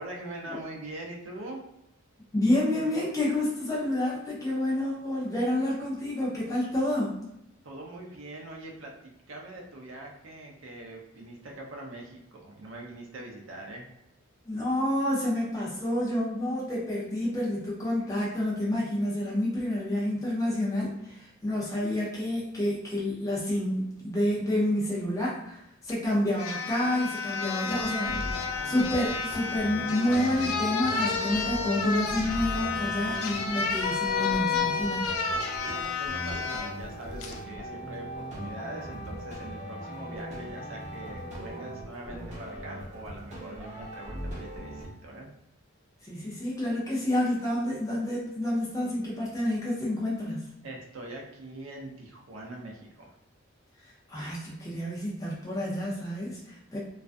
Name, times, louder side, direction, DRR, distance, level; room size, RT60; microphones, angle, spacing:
voice 1, 0.0-1.6 7.6-13.9 35.7-45.3 50.6-53.1, right 1 dB, 65° right, 0 dB, 0.5 m, -42 dB
voice 2, 2.3-7.2 14.5-28.4 28.6-35.1 46.0-50.5 54.1-56.8, left 1 dB, 15° left, -6 dB, 0.5 m, -29 dB
sound 1, 25.9-26.0 26.4-36.7 37.2-37.4, left 5 dB, 85° left, 0.4 m, -31 dB
sound 2, 27.7-44.9, equal, 35° right, 0.8 m, -39 dB
2.4 x 2.2 x 2.4 m, 0.85 s
head